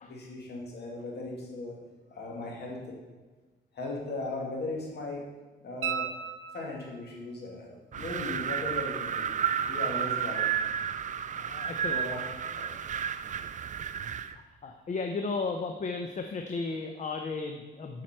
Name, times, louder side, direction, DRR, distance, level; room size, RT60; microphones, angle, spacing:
voice 1, 0.0-1.7 2.1-3.0 3.7-5.2 5.6-6.1 6.5-9.3 9.7-10.7 11.9-12.2 12.5-12.7, left 2 dB, 55° left, -2 dB, 2.2 m, -37 dB
sound 1, 5.8-7.1 9.9-10.0, right 8 dB, 90° right, 0.7 m, -35 dB
Wind, 7.9-14.4, right 8 dB, 40° right, 0.4 m, -32 dB
voice 2, 11.2-12.0 14.3-18.0, left 4 dB, 40° left, 4 dB, 0.7 m, -35 dB
7.5 x 5.8 x 4.4 m, 1.3 s
cardioid pair, 90°, 20 cm